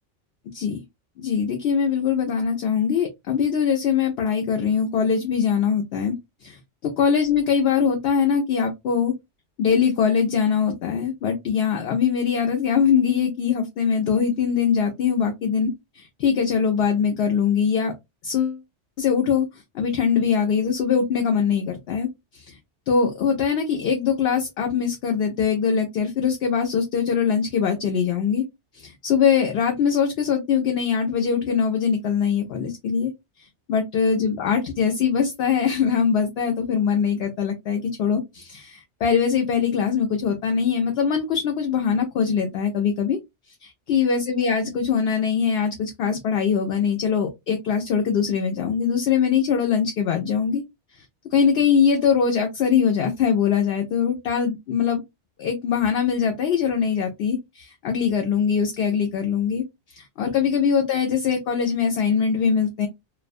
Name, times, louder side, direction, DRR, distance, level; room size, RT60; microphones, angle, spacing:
voice 1, 1.2-6.1 6.4-6.6 7.0-9.1 9.6-17.9 18.2-18.6 19.0-19.5 19.7-22.6 22.9-28.4 28.7-33.1 33.7-43.2 43.6-50.6 51.3-55.0 55.4-62.9, left 7 dB, 65° left, 0.7 m, -22 dB
2.3 x 2.1 x 2.4 m
omnidirectional pair, 1.2 m